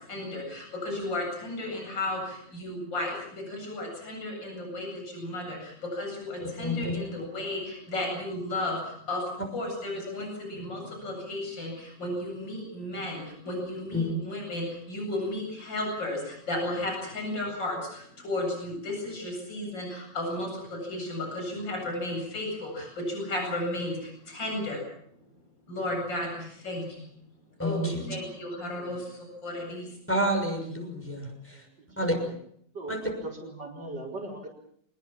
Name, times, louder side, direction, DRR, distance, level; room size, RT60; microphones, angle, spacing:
voice 1, 0.1-9.2 9.5-24.8 25.7-27.1 27.6-29.9, left 1 dB, 75° left, 1 dB, 8.8 m, -34 dB
voice 2, 6.4-7.0 13.9-14.1 27.6-28.2 30.1-31.7 32.0-32.2 32.9-33.0, equal, 5° left, 1 dB, 6.5 m, -29 dB
voice 3, 33.2-34.5, right 2 dB, 70° right, -2 dB, 5.2 m, -39 dB
25.5 x 20.5 x 7.4 m, 0.67 s
omnidirectional pair, 2.0 m